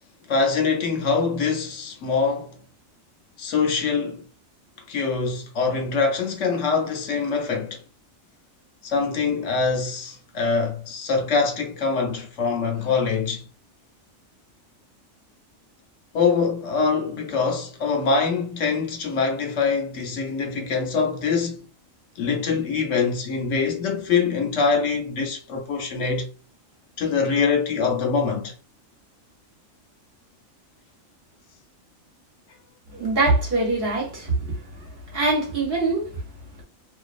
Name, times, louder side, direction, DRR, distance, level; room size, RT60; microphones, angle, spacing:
voice 1, 0.3-2.5 3.4-4.2 4.9-7.8 8.8-13.4 16.1-21.7 22.2-26.3 27.0-28.5, left 5 dB, 70° left, 0.9 m, -24 dB
voice 2, 32.9-34.3 35.1-36.1, right 2 dB, 50° right, 1.0 m, -22 dB
2.5 x 2.1 x 2.4 m
omnidirectional pair, 1.4 m